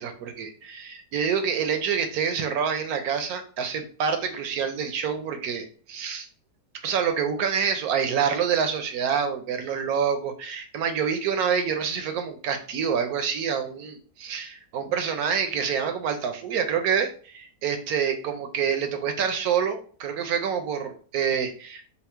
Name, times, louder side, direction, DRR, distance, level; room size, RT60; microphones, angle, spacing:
voice 1, 0.0-6.3 6.8-21.9, right 7 dB, 70° right, 7 dB, 1.0 m, -27 dB
4.2 x 2.0 x 4.3 m, 0.42 s
omnidirectional pair, 1.8 m